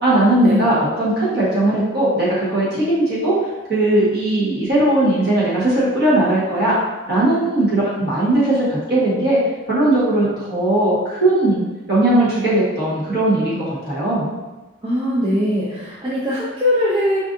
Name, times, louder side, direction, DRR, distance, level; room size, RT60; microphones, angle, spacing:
voice 1, 0.0-3.3 3.7-6.7 7.1-9.4 9.7-14.3, right 1 dB, 55° right, -8 dB, 1.4 m, -18 dB
voice 2, 14.8-17.2, left 1 dB, 25° right, -8 dB, 0.5 m, -20 dB
4.4 x 2.6 x 2.6 m, 1.2 s
head